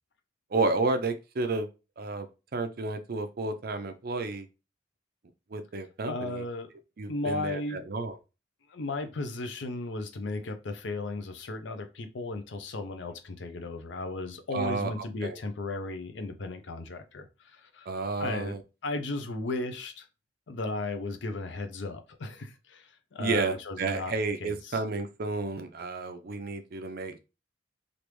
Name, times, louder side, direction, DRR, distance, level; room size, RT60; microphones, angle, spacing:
voice 1, 0.5-1.7 2.0-4.5 5.5-6.4 7.0-8.1 14.5-15.4 17.9-18.6 23.2-27.2, right 3 dB, 55° right, 0.5 m, -31 dB
voice 2, 6.1-6.7 7.1-7.8 8.7-17.9 18.2-18.6 18.8-20.1 20.5-24.1 24.4-24.8, left 2 dB, 75° left, 0.6 m, -35 dB
3.3 x 2.5 x 3.0 m
head